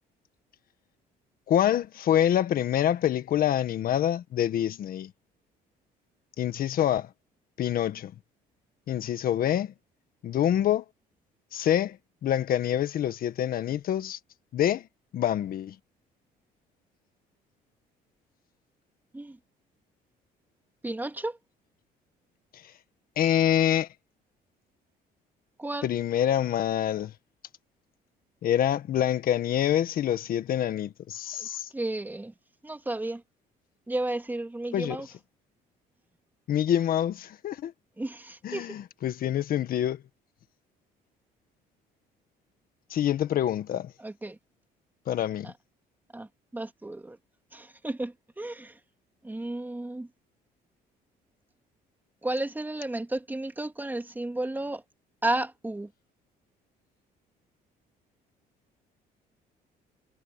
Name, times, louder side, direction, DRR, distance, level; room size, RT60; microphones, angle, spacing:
voice 1, 1.5-5.1 6.4-7.1 7.6-8.1 8.9-9.7 10.2-10.8 11.5-12.0 12.2-14.2 14.5-14.9 15.1-15.7 23.2-23.9 25.8-27.1 28.4-31.7 34.7-35.0 36.5-37.7 38.4-40.0 42.9-43.9 45.1-45.5, left 10 dB, 60° left, 1.6 m, -26 dB
voice 2, 20.8-21.4 25.6-25.9 31.4-31.5 31.7-32.3 32.6-33.2 33.9-35.1 38.0-38.8 44.0-44.4 45.4-45.5 46.1-47.2 47.5-48.8 49.2-50.1 52.2-54.8 55.2-55.9, right 2 dB, 10° right, 2.2 m, -33 dB
cardioid pair, 110°, 17 cm